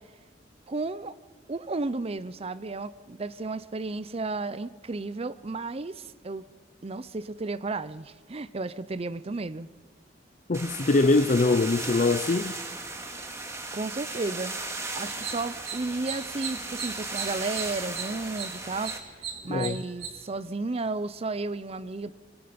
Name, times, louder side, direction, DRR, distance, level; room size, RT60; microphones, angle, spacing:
voice 1, 0.7-1.1 1.5-6.5 6.8-9.7 13.1-13.2 13.7-14.6 14.9-18.9 19.4-22.1, right 3 dB, 35° right, 0.6 m, -33 dB
voice 2, 10.5-12.5 19.5-19.8, left 3 dB, 45° left, 0.5 m, -23 dB
sound 1, 10.5-19.0, right 3 dB, 15° right, 2.3 m, -36 dB
sound 2, 15.2-20.1, right 7 dB, 80° right, 3.5 m, -38 dB
26.0 x 23.5 x 5.2 m
head